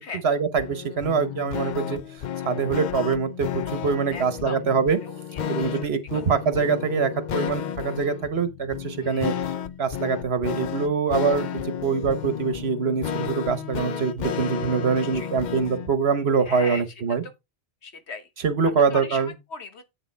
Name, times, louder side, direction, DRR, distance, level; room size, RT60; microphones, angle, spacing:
voice 1, 0.2-2.0 2.4-5.0 5.5-9.3 9.8-17.2 18.4-19.3, right 5 dB, 70° right, 1.4 m, -24 dB
sound 1, 0.6-15.9, left 9 dB, 55° left, 0.6 m, -32 dB
voice 2, 4.1-4.6 5.0-5.4 5.7-5.8 9.0-9.4 15.0-15.3 16.5-16.8 17.8-18.3 18.6-19.8, left 4 dB, 80° left, 1.5 m, -38 dB
8.6 x 6.7 x 3.3 m
omnidirectional pair, 1.1 m